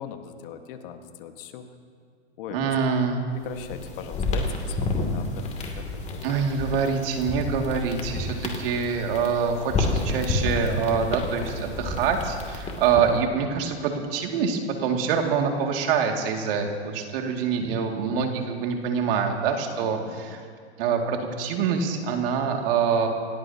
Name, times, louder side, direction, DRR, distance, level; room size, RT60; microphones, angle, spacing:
voice 1, 0.0-1.6 2.4-2.7 3.3-6.2 19.8-20.4, left 9 dB, 50° left, 7 dB, 1.6 m, -40 dB
voice 2, 2.5-3.2 6.2-20.4 20.8-23.1, right 6 dB, 55° right, 3 dB, 2.4 m, -25 dB
sound 1, 3.4-13.2, left 3 dB, 20° left, 2.5 m, -30 dB
27.5 x 17.0 x 2.9 m, 2.1 s
hypercardioid pair, 120°, 34 cm